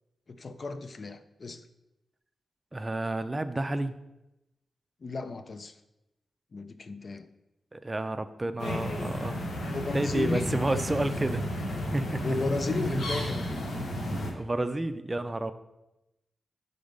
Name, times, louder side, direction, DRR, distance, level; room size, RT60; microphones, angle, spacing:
voice 1, 0.3-1.6 5.0-5.8 6.5-7.3 9.7-10.8 12.2-13.5, left 3 dB, 50° left, 10 dB, 0.4 m, -33 dB
voice 2, 2.7-4.0 7.7-9.5 9.9-11.5 11.9-12.2 14.3-15.5, right 2 dB, 25° right, 11 dB, 0.4 m, -30 dB
sound 1, 8.6-14.3, left 1 dB, 80° left, 1.0 m, -33 dB
5.2 x 3.9 x 5.1 m, 0.93 s
cardioid pair, 65°, 0 cm